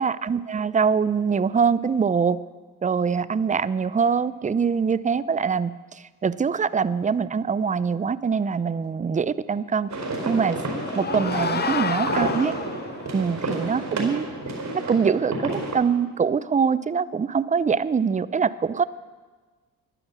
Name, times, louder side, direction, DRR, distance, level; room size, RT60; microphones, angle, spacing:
voice 1, 0.0-2.4 2.8-9.9 10.2-10.6 11.0-12.6 13.1-14.3 14.7-18.8, right 6 dB, 20° right, 17 dB, 0.5 m, -23 dB
sound 1, 9.9-15.7, right 2 dB, 45° right, 4.4 m, -30 dB
sound 2, 10.3-13.1, left 6 dB, 25° left, 0.6 m, -30 dB
12.5 x 10.0 x 6.9 m, 1.4 s
supercardioid pair, 60°, 39 cm